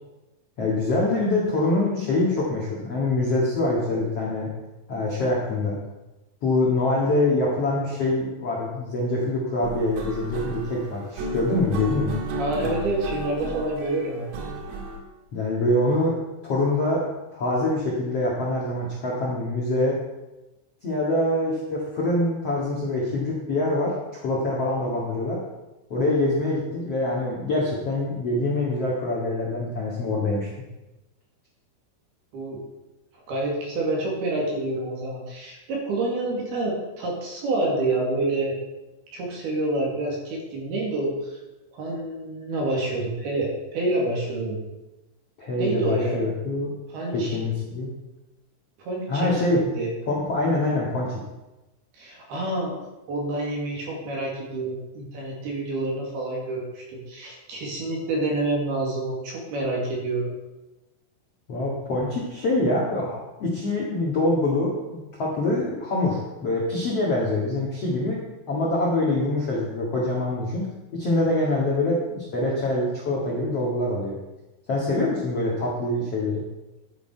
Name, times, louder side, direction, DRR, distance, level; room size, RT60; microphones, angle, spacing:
voice 1, 0.6-4.5 4.9-5.8 6.4-12.2 15.3-16.1 16.4-19.9 20.8-25.4 25.9-30.5 45.4-46.7 47.1-47.9 49.1-49.6 50.1-51.1 61.5-68.2 68.5-70.7 70.9-74.2 74.7-76.4, left 2 dB, 50° left, -4 dB, 1.9 m, -25 dB
sound 1, 9.6-15.0, right 2 dB, 85° right, 4.3 m, -33 dB
voice 2, 12.4-14.3 32.3-32.6 33.3-38.6 39.1-41.4 41.7-44.6 45.6-46.3 46.9-47.4 48.8-49.9 51.9-52.7 53.1-60.3, right 2 dB, 60° right, -2 dB, 3.9 m, -28 dB
12.5 x 9.8 x 4.6 m, 1.0 s
omnidirectional pair, 5.6 m